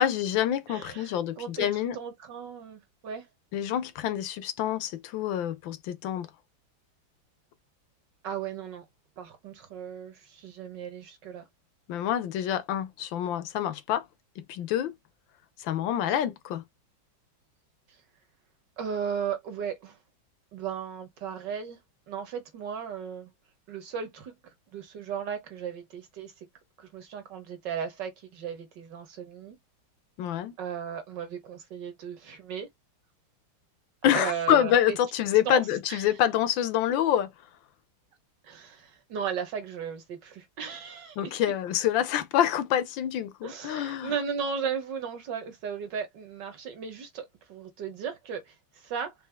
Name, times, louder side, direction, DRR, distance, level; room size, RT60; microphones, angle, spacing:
voice 1, 0.0-2.0 3.5-6.3 11.9-14.0 14.4-14.9 15.6-16.6 30.2-30.5 34.0-37.3 41.2-44.1, left 11 dB, 75° left, 1.3 m, -27 dB
voice 2, 0.7-1.7 1.9-3.3 8.2-8.9 9.2-11.5 18.8-20.0 20.5-21.8 22.1-23.3 23.7-24.3 24.7-26.3 26.8-29.6 30.6-32.7 34.1-35.0 35.5-35.6 35.9-36.0 38.4-41.3 43.4-49.1, right 7 dB, 65° right, 1.8 m, -36 dB
4.4 x 2.7 x 3.4 m
omnidirectional pair, 2.2 m